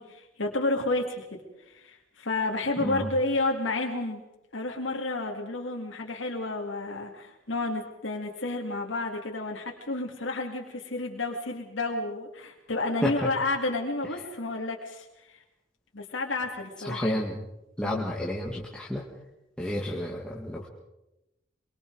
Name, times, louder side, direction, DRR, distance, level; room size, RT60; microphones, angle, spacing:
voice 1, 0.0-1.4 1.7-4.2 4.5-15.4 15.9-17.2 17.8-18.1, left 2 dB, 85° left, 0 dB, 2.4 m, -31 dB
voice 2, 16.8-17.5 17.8-19.0 19.6-20.7, left 1 dB, 5° left, -4 dB, 1.9 m, -31 dB
24.0 x 23.5 x 4.7 m, 0.94 s
head